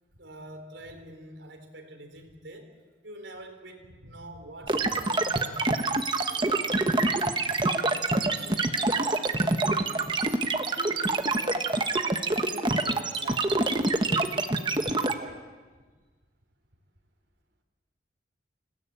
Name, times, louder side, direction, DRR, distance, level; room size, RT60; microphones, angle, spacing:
voice 1, 0.2-2.8 3.0-6.9, right 1 dB, 85° right, 4 dB, 4.1 m, -46 dB
sound 1, 4.7-15.1, right 2 dB, 25° right, 1.2 m, -26 dB
voice 2, 7.9-11.6 12.0-13.5 14.1-15.4, right 1 dB, 50° right, -1 dB, 3.0 m, -46 dB
28.0 x 18.0 x 8.9 m, 1.4 s
head